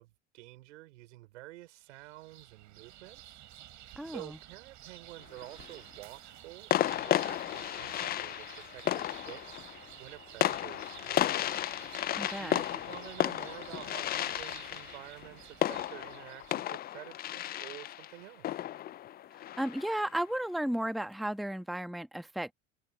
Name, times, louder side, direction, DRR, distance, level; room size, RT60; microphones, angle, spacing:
voice 1, 0.0-3.4 4.0-9.6 10.0-11.4 12.4-18.6, right 19 dB, 75° right, 5.7 m, -49 dB
sound 1, 1.8-17.0, right 13 dB, 50° right, 6.5 m, -52 dB
voice 2, 4.0-4.4 12.2-12.6 19.3-22.5, right 1 dB, ahead, 1.3 m, -34 dB
sound 2, 5.2-5.8 6.7-20.1, left 12 dB, 25° left, 0.4 m, -34 dB
hypercardioid pair, 80°, 37 cm